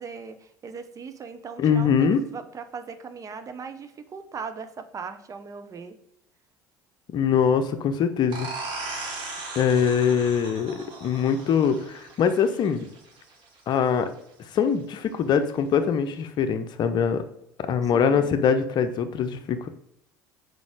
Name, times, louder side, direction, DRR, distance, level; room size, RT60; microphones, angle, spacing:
voice 1, 0.0-5.9 17.8-18.3, right 5 dB, 35° right, 9 dB, 0.8 m, -39 dB
voice 2, 1.6-2.2 7.1-8.5 9.5-12.9 13.7-14.1 14.5-17.2 17.7-19.7, left 7 dB, 50° left, 9 dB, 0.7 m, -23 dB
sound 1, 8.3-13.7, right 3 dB, 55° right, 1.5 m, -38 dB
4.8 x 4.1 x 4.9 m, 0.77 s
hypercardioid pair, 65°, 10 cm